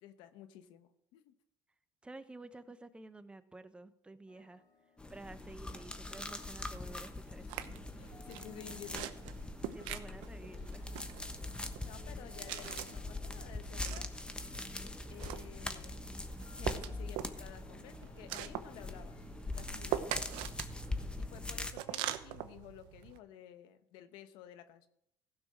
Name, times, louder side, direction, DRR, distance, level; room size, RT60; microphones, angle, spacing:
voice 1, 0.0-1.3 7.4-7.5 7.9-9.1 11.8-14.1 15.1-16.1 16.5-19.2 19.4-20.4 21.2-24.9, left 11 dB, 80° left, 10 dB, 1.0 m, -53 dB
voice 2, 2.0-4.6 5.1-7.8 9.7-10.9, right 2 dB, 15° right, 11 dB, 1.0 m, -51 dB
sound 1, 4.3-20.4, left 5 dB, 60° left, 2.4 m, -64 dB
sound 2, 5.0-21.7, left 2 dB, 10° left, 1.2 m, -43 dB
sound 3, 7.5-23.2, right 12 dB, 85° right, 0.8 m, -44 dB
15.5 x 6.3 x 6.3 m, 0.73 s
supercardioid pair, 95°, 8 cm